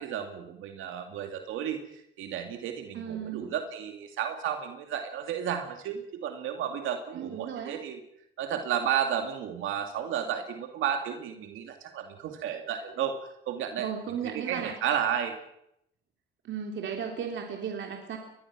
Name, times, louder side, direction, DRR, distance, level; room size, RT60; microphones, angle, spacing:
voice 1, 0.0-8.0 8.4-13.1 13.5-13.9 14.2-15.4, right 9 dB, 85° right, 5 dB, 2.4 m, -32 dB
voice 2, 2.9-3.5 7.1-7.8 13.8-14.7 16.4-18.2, right 7 dB, 70° right, 2 dB, 3.3 m, -35 dB
23.0 x 20.5 x 6.1 m, 0.76 s
cardioid pair, 90°, 20 cm